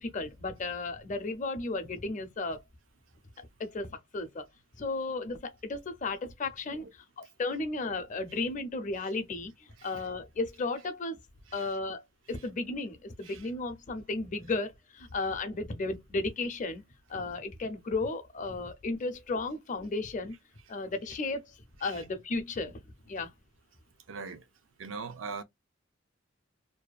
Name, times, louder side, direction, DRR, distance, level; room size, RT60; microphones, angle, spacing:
voice 1, 0.0-2.6 3.6-4.5 4.8-11.2 11.5-12.0 12.3-16.8 17.1-20.4 20.7-22.8 23.1-23.3, left 3 dB, 40° left, 0.6 m, -34 dB
voice 2, 24.1-24.4 24.8-25.4, right 4 dB, 75° right, 0.5 m, -42 dB
2.6 x 2.2 x 2.3 m
head